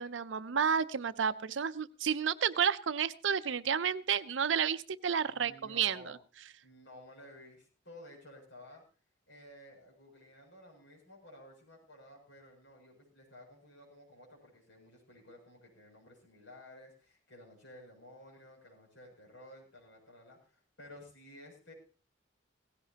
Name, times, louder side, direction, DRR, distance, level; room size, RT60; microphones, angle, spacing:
voice 1, 0.0-6.1, right 7 dB, 75° right, 15 dB, 0.6 m, -31 dB
voice 2, 5.3-6.2 6.6-8.8 9.3-21.7, left 1 dB, 75° left, -1 dB, 7.1 m, -54 dB
17.5 x 16.0 x 2.9 m, 0.36 s
head